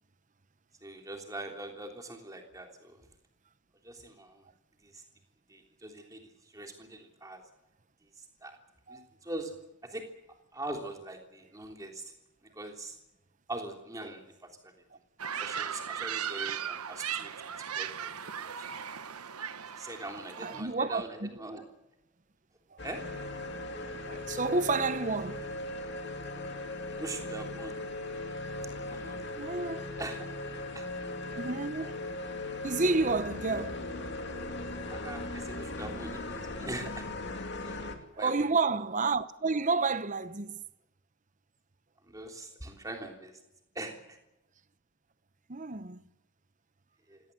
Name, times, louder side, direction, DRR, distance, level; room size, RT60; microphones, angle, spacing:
voice 1, 0.8-3.0 3.8-4.4 4.8-5.0 5.5-7.4 8.2-8.6 8.9-9.5 9.8-10.0 10.5-12.1 12.5-13.0 13.5-14.7 15.4-17.3 17.8-18.7 19.8-21.6 22.8-23.0 27.0-27.8 28.9-29.2 30.0-30.3 30.7-30.9 33.5-33.6 34.9-37.1 37.5-38.5 42.0-43.3 43.7-44.2 47.1-47.2, right 1 dB, 15° right, 3.4 m, -42 dB
sound 1, 15.2-20.6, right 8 dB, 90° right, 1.2 m, -37 dB
voice 2, 20.4-21.3 22.7-22.8 24.1-25.4 28.8-28.9 29.4-29.8 31.3-32.0 32.6-33.8 38.2-40.6 45.5-46.0, right 3 dB, 35° right, 0.9 m, -30 dB
sound 2, 22.8-38.0, left 2 dB, 50° left, 2.6 m, -38 dB
27.5 x 17.5 x 8.0 m
head